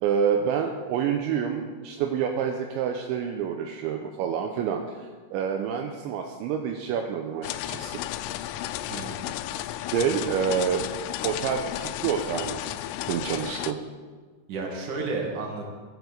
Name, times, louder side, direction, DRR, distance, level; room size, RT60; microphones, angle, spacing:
voice 1, 0.0-8.0 9.9-10.9 11.2-12.6 13.0-13.8, right 7 dB, 80° right, 3 dB, 2.8 m, -28 dB
sound 1, 7.4-13.7, left 14 dB, 90° left, 3.2 m, -33 dB
voice 2, 8.9-9.2 10.3-10.4 13.2-13.5 14.5-15.7, right 3 dB, 50° right, -1 dB, 3.1 m, -33 dB
13.5 x 8.1 x 6.9 m, 1.5 s
omnidirectional pair, 5.7 m